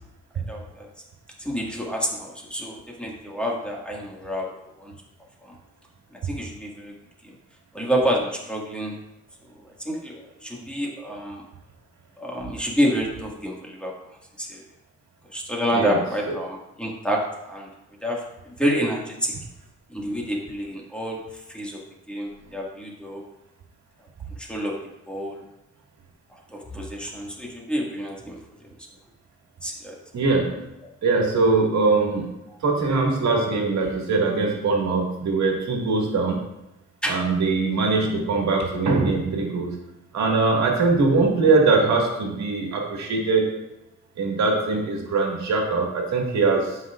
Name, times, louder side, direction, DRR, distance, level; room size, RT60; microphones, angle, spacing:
voice 1, 0.3-0.9 1.4-4.5 4.8-4.9 5.4-5.6 6.2-6.9 7.2-7.3 7.7-9.0 9.8-11.4 12.2-13.9 14.4-14.6 15.3-17.7 18.0-19.3 19.9-21.8 22.1-23.2 24.4-24.8 25.1-25.4 26.3-28.4 29.6-30.0 32.5-32.6 37.0-37.2, equal, 5° left, -3 dB, 1.8 m, -28 dB
voice 2, 30.1-30.6 31.0-32.3 32.6-36.4 37.1-39.8 40.1-43.5 44.2-46.8, right 3 dB, 65° right, 0 dB, 1.9 m, -22 dB
12.5 x 5.7 x 2.4 m, 0.92 s
cardioid pair, 90°, 30 cm